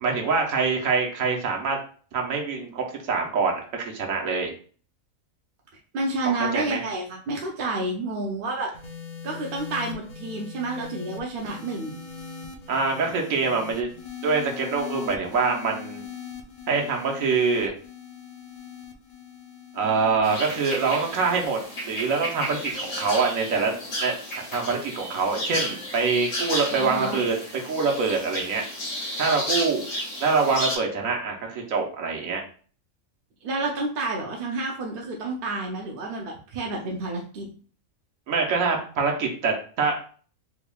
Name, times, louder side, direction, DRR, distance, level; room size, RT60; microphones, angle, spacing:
voice 1, 0.0-1.8 2.1-4.5 6.3-6.8 12.7-13.9 14.2-16.0 16.7-17.7 19.7-23.7 24.0-28.6 29.2-29.9 30.2-32.4 38.3-40.0, right 4 dB, 75° right, 1 dB, 1.3 m, -25 dB
voice 2, 5.9-8.7 9.2-12.0 26.7-27.2 33.4-37.5, right 2 dB, 55° right, 0 dB, 0.6 m, -30 dB
sound 1, 8.7-25.2 26.1-26.5, left 7 dB, 50° left, 0.5 m, -42 dB
sound 2, 20.2-30.8, equal, 65° left, 1.5 m, -33 dB
3.5 x 3.5 x 2.3 m, 0.43 s
omnidirectional pair, 1.4 m